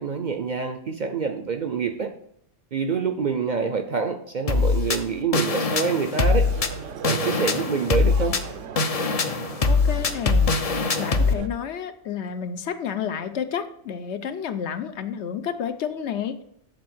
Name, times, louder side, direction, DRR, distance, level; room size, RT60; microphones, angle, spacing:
voice 1, 0.0-2.1 2.7-6.5 7.1-8.3, right 5 dB, 50° right, 0.6 m, -26 dB
sound 1, 4.5-11.3, left 4 dB, 40° left, 0.5 m, -22 dB
sound 2, 6.4-11.5, right 8 dB, 85° right, 1.0 m, -38 dB
voice 2, 9.7-16.4, left 8 dB, 70° left, 0.9 m, -31 dB
7.7 x 4.2 x 6.1 m
omnidirectional pair, 1.2 m